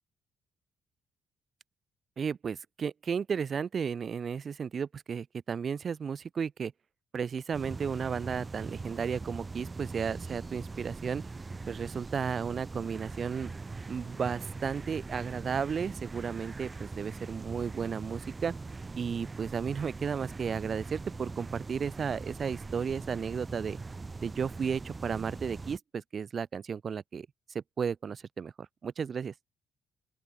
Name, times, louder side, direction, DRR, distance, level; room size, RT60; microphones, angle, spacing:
voice 1, 2.2-6.7 7.1-11.2 11.7-13.5 13.9-18.5 18.9-23.8 24.2-27.3 27.5-29.3, right 6 dB, 45° right, 0.4 m, -34 dB
sound 1, 7.5-25.8, right 3 dB, 25° right, 2.8 m, -41 dB
open air
cardioid pair, 90°, 0 cm